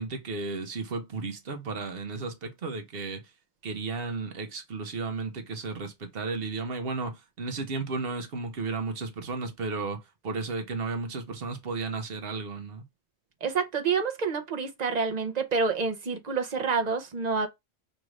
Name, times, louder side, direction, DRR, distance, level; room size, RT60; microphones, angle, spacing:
voice 1, 0.0-3.2 3.6-12.8, right 3 dB, 65° right, 1.1 m, -34 dB
voice 2, 13.4-17.5, right 5 dB, 45° right, 0.8 m, -28 dB
5.1 x 2.5 x 3.1 m
omnidirectional pair, 1.1 m